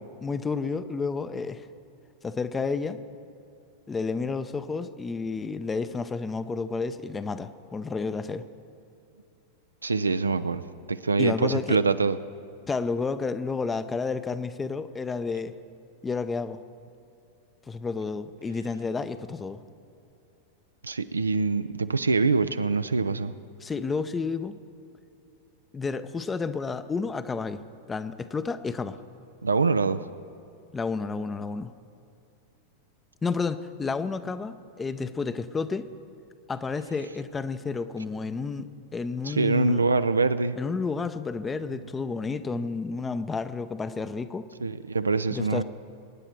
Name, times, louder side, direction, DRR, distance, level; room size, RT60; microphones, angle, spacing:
voice 1, 0.2-1.7 2.2-3.0 3.9-8.4 11.2-11.8 12.7-15.5 16.0-16.6 17.7-19.6 23.6-24.6 25.7-27.6 27.9-29.0 30.7-31.7 33.2-35.9 36.5-39.8 40.6-44.5 45.3-45.6, left 4 dB, 15° left, 12 dB, 0.6 m, -31 dB
voice 2, 9.8-10.6 10.9-12.2 20.8-23.3 29.4-30.0 39.2-40.6 44.6-45.6, right 4 dB, 75° right, 12 dB, 0.4 m, -24 dB
23.0 x 9.9 x 4.5 m, 2.7 s
figure-of-eight pair, 90°, 0 cm